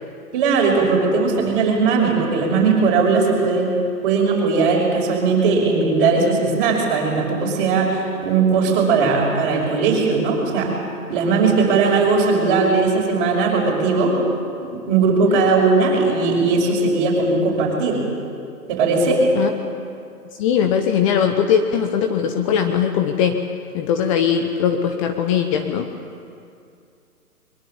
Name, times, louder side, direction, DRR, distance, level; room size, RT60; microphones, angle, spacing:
voice 1, 0.3-3.7 4.0-10.7 11.1-14.1 14.7-18.0 18.7-19.2, right 4 dB, 35° right, -1 dB, 5.8 m, -18 dB
voice 2, 20.4-23.4 23.7-25.9, left 8 dB, 20° left, 5 dB, 0.9 m, -20 dB
22.5 x 22.0 x 7.2 m, 2.4 s
figure-of-eight pair, 130°, 46 cm